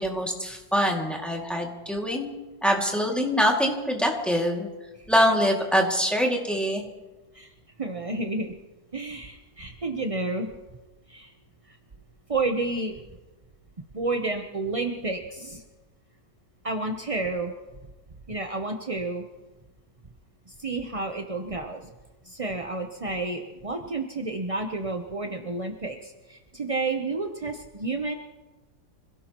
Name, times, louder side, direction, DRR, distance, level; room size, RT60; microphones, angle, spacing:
voice 1, 0.0-2.3 2.6-4.7 5.1-6.8, equal, ahead, -1 dB, 2.2 m, -24 dB
voice 2, 7.8-8.5 8.9-10.5 11.1-11.3 11.7-11.8 12.3-12.9 13.9-15.6 16.6-17.5 18.3-19.2 20.5-21.9 22.2-28.1, right 3 dB, 35° right, 4 dB, 0.5 m, -30 dB
26.0 x 17.0 x 3.0 m, 1.2 s
omnidirectional pair, 2.0 m